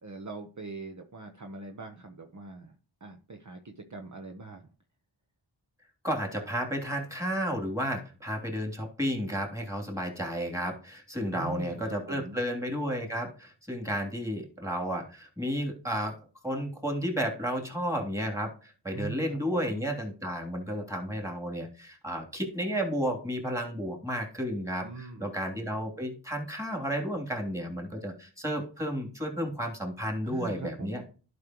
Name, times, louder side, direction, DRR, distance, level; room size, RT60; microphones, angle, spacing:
voice 1, 0.0-2.7 3.0-4.6 11.3-12.4 18.9-19.8 24.8-25.3 30.2-31.0, right 3 dB, 40° right, 3 dB, 1.0 m, -42 dB
voice 2, 6.0-16.2 16.4-31.0, equal, 5° right, 1 dB, 3.0 m, -32 dB
11.5 x 5.3 x 3.0 m, 0.37 s
cardioid pair, 45°, 45 cm